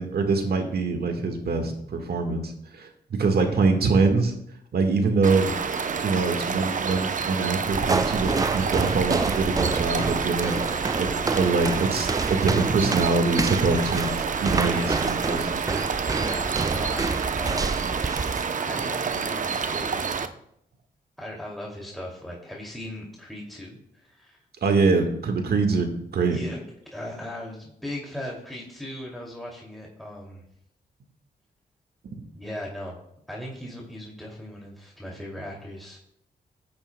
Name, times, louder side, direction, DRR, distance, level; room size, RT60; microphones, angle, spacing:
voice 1, 0.0-4.3 4.7-5.5 6.0-10.6 11.0-15.6 24.6-26.4 32.1-32.2, right 4 dB, 65° right, 5 dB, 1.6 m, -24 dB
voice 2, 3.5-3.8 14.6-15.0 16.1-17.9 18.7-20.3 21.2-24.4 26.3-26.6 26.9-30.4 32.3-33.0 33.3-36.0, left 1 dB, ahead, -3 dB, 2.5 m, -38 dB
sound 1, 5.2-20.2, right 5 dB, 50° right, 0.7 m, -28 dB
sound 2, 7.7-18.5, right 4 dB, 20° right, 0.3 m, -28 dB
14.0 x 8.6 x 2.2 m, 0.74 s
supercardioid pair, 50°, 17 cm